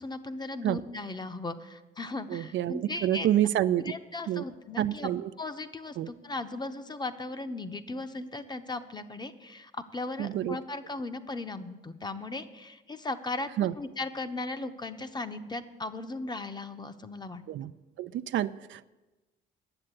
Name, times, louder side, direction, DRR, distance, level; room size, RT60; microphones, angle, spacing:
voice 1, 0.0-3.3 3.8-5.1 5.4-17.4, left 2 dB, 20° left, 10 dB, 0.8 m, -37 dB
voice 2, 2.3-3.9 4.3-4.4 4.8-5.3 6.0-6.1 10.2-10.6 13.6-13.7 17.5-17.7 18.0-18.9, right 12 dB, 70° right, 13 dB, 0.4 m, -28 dB
9.9 x 7.6 x 9.0 m, 1.1 s
cardioid pair, 90°, 20 cm